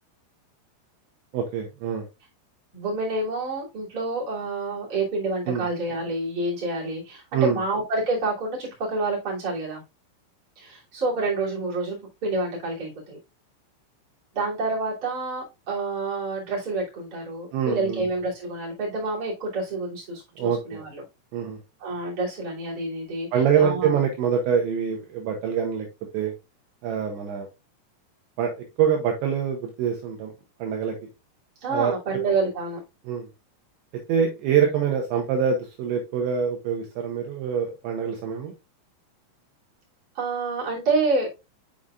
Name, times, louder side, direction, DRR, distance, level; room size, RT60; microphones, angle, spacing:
voice 1, 1.3-2.1 5.5-5.6 7.3-7.6 17.5-18.0 20.4-20.8 21.3-21.6 23.3-25.9 26.1-26.3 26.8-27.5 28.4-30.3 30.6-31.0 31.7-31.9 33.1-33.3 34.1-38.5, right 7 dB, 75° right, 2 dB, 2.9 m, -25 dB
voice 2, 2.7-9.8 10.6-13.2 14.3-21.0 21.8-24.0 31.6-32.8 40.1-41.3, right 3 dB, 25° right, -5 dB, 2.2 m, -28 dB
7.0 x 6.2 x 2.4 m, 0.26 s
omnidirectional pair, 6.0 m